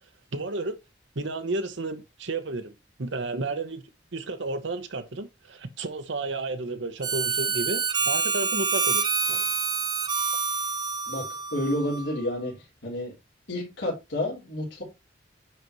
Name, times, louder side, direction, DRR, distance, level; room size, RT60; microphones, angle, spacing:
voice 1, 0.3-0.8 1.2-2.7 3.0-3.8 4.1-9.5, right 2 dB, 80° right, 0.9 m, -32 dB
Harmonica, 7.0-12.2, right 5 dB, 25° right, 0.5 m, -27 dB
voice 2, 11.5-13.1 13.5-14.8, left 1 dB, 75° left, 3.6 m, -30 dB
10.0 x 4.0 x 3.0 m
head